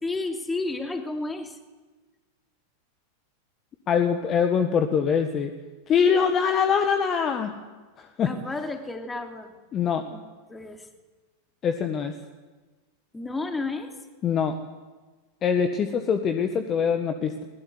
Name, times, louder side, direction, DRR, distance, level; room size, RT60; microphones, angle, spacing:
voice 1, 0.0-1.6 8.2-9.6 10.1-10.2 10.5-10.9 13.1-13.9, left 3 dB, 10° left, 5 dB, 3.0 m, -31 dB
voice 2, 3.9-5.5 5.9-7.5 8.0-8.3 9.7-10.0 11.6-12.1 14.2-14.6 15.4-17.4, left 7 dB, 30° left, 7 dB, 1.7 m, -23 dB
20.5 x 20.5 x 9.8 m, 1.3 s
figure-of-eight pair, 90°, 0 cm